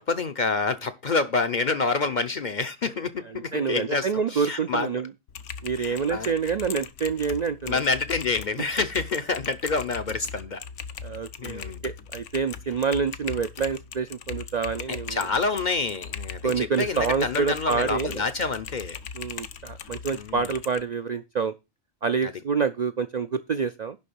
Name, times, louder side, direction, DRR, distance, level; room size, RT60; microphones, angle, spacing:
voice 1, 0.0-4.9 5.8-6.3 7.7-10.6 11.4-11.8 14.9-19.0 20.1-20.5 22.2-22.3, left 4 dB, 45° left, 0.7 m, -27 dB
voice 2, 3.5-5.1 5.6-7.8 11.0-15.3 16.4-18.2 19.1-21.5 22.0-24.0, right 5 dB, 55° right, 0.4 m, -27 dB
Typing, 5.3-20.8, left 7 dB, 70° left, 1.1 m, -39 dB
11.0 x 3.8 x 7.0 m
omnidirectional pair, 1.3 m